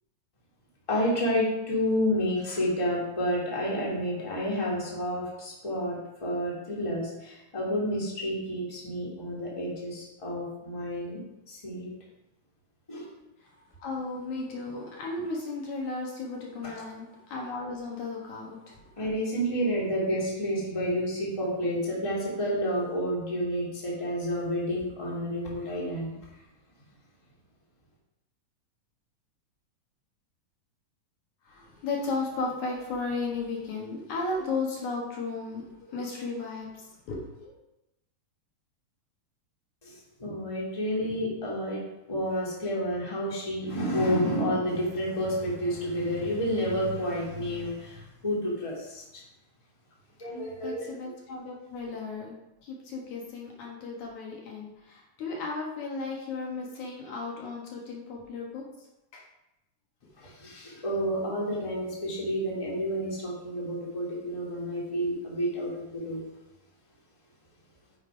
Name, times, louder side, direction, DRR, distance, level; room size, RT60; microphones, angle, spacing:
voice 1, 0.9-11.2 11.5-11.9 12.9-13.1 16.6-16.7 19.0-26.1 39.8-41.8 42.1-49.2 50.2-50.9 60.2-66.2, equal, 10° left, -5 dB, 2.0 m, -30 dB
voice 2, 13.8-18.9 31.4-37.5 50.6-52.3 52.6-58.6 59.1-59.2 60.2-60.3, left 3 dB, 65° left, -2 dB, 2.7 m, -35 dB
9.1 x 5.7 x 5.0 m, 0.92 s
omnidirectional pair, 3.7 m